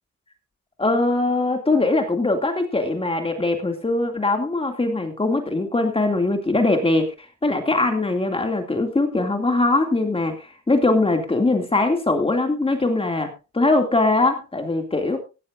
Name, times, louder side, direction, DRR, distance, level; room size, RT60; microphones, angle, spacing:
voice 1, 0.8-7.1 7.4-15.2, left 2 dB, 20° left, 4 dB, 2.5 m, -21 dB
15.5 x 15.0 x 2.6 m, 0.31 s
cardioid pair, 90°, 30 cm